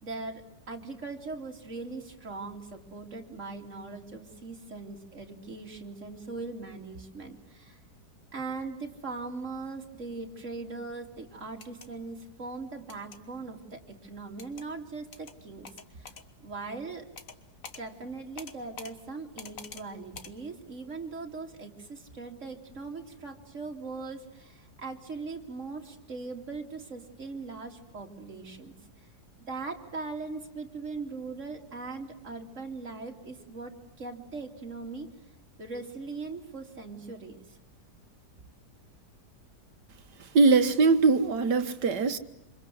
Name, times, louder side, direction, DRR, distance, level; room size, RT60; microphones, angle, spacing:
voice 1, 0.0-7.8 8.3-16.1 16.4-17.1 17.8-28.7 29.5-35.1 35.6-37.6, right 3 dB, 45° right, 3.2 m, -40 dB
sound 1, 11.5-11.9 12.9-13.2 14.4-14.7 15.1-15.3 15.6-16.2 17.2-17.4 17.6-17.8 18.4-18.9 19.4-19.8 20.1-20.3, left 5 dB, 55° left, 1.9 m, -45 dB
voice 2, 40.3-42.2, right 4 dB, 85° right, 2.0 m, -21 dB
27.5 x 26.5 x 7.7 m
omnidirectional pair, 1.8 m